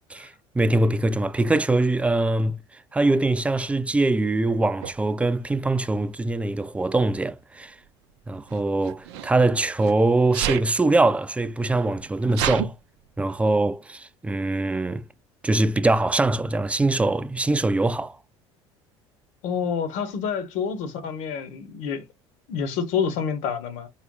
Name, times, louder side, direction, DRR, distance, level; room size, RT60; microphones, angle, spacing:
voice 1, 0.1-2.6 2.9-7.8 8.3-12.7 13.2-15.0 15.4-18.2, right 2 dB, 10° right, 0.4 m, -23 dB
Sneeze, 4.8-5.0 6.1-6.4 8.5-9.9 10.3-10.7 11.4-11.5 11.7-12.7, right 11 dB, 70° right, 0.5 m, -29 dB
voice 2, 19.4-22.0 22.5-23.9, left 6 dB, 60° left, 0.9 m, -28 dB
4.0 x 2.2 x 3.7 m
hypercardioid pair, 70°, 14 cm